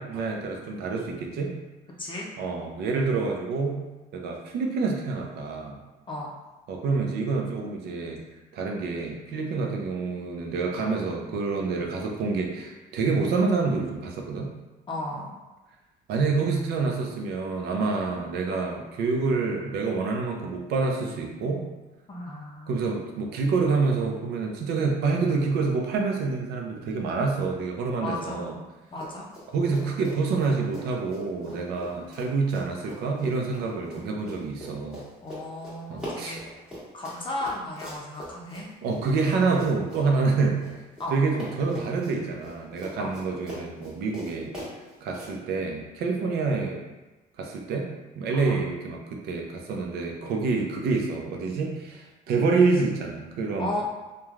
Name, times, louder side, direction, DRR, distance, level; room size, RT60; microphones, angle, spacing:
voice 1, 0.0-1.5 2.4-3.8 4.1-5.8 6.7-8.2 8.5-14.5 16.1-21.7 22.7-28.5 29.5-35.0 35.9-36.4 38.8-40.6 41.1-44.5 45.0-46.8 47.4-47.9 48.2-53.8, right 4 dB, 75° right, 1 dB, 0.5 m, -27 dB
voice 2, 14.9-15.3 22.1-22.8 28.0-28.6 28.9-29.3 33.7-34.1 35.2-36.4 36.9-38.7 41.0-41.1 43.0-43.1 48.3-48.6 53.6-53.8, left 1 dB, 30° left, -3 dB, 0.5 m, -34 dB
Run, 28.9-29.5 29.7-41.1 41.3-45.3, equal, 5° right, 1.4 m, -41 dB
3.0 x 2.3 x 2.4 m, 1.2 s
cardioid pair, 110°, 17 cm